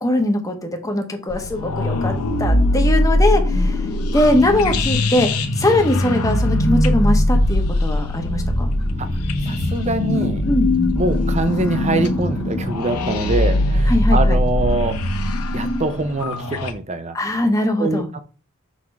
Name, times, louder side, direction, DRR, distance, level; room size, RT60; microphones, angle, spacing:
voice 1, 0.0-5.3 5.6-8.7 10.5-10.7 13.9-14.4 17.1-18.1, left 1 dB, 15° left, 1.0 m, -21 dB
sound 1, 1.3-16.7, left 1 dB, 90° left, 0.9 m, -20 dB
voice 2, 9.5-10.4 11.0-15.0 15.5-17.2 17.8-18.2, right 2 dB, 30° right, 0.7 m, -23 dB
6.3 x 3.7 x 4.6 m
head